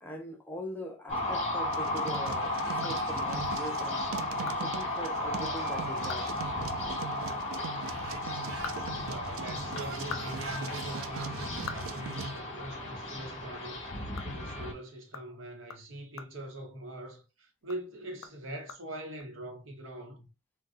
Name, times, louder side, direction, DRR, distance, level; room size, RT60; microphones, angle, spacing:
voice 1, 0.0-4.0 4.6-6.5, equal, 10° left, 0.5 m, -42 dB
sound 1, 1.1-14.7, left 1 dB, 30° left, 1.0 m, -34 dB
sound 2, 1.7-12.4, right 6 dB, 85° right, 0.4 m, -42 dB
sound 3, 2.8-3.6 4.0-4.1 4.5-4.6 4.9-5.0 5.5-5.6 5.9-6.4 6.6-6.7 8.2-9.5 9.9-12.8 13.1-13.3 13.6-17.2 17.6-19.2, left 5 dB, 85° left, 0.5 m, -46 dB
voice 2, 8.9-13.9 14.2-20.3, right 1 dB, 70° right, 0.9 m, -42 dB
3.8 x 2.2 x 2.5 m
head